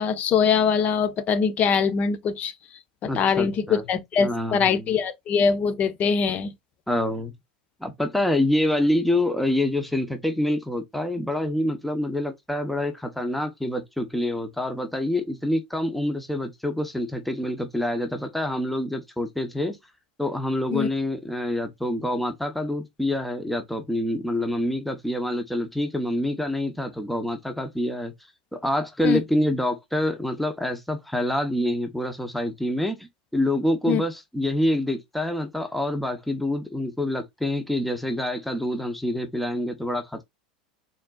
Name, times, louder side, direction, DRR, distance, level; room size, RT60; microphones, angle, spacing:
voice 1, 0.0-2.5 3.0-6.5 20.7-20.9 29.0-29.2 33.9-34.0, left 6 dB, 40° left, 0.9 m, -23 dB
voice 2, 3.1-3.8 4.2-4.9 6.9-7.3 7.8-19.8 20.2-28.1 28.5-40.2, left 1 dB, ahead, 0.9 m, -26 dB
4.3 x 3.9 x 2.4 m
hypercardioid pair, 80°, 4 cm